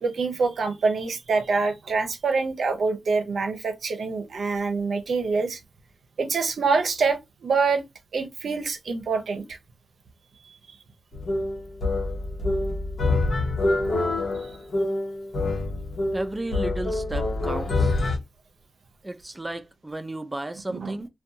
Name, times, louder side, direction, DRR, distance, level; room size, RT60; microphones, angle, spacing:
voice 1, 0.0-5.6 6.2-7.8 8.1-9.6 10.5-10.8 14.4-14.6 20.7-20.9, right 4 dB, 80° right, 0.5 m, -26 dB
sound 1, 11.1-18.2, left 2 dB, 75° left, 0.9 m, -26 dB
voice 2, 16.1-18.0 19.0-21.1, right 1 dB, 20° right, 0.4 m, -33 dB
2.5 x 2.2 x 2.6 m
cardioid pair, 60°, 0 cm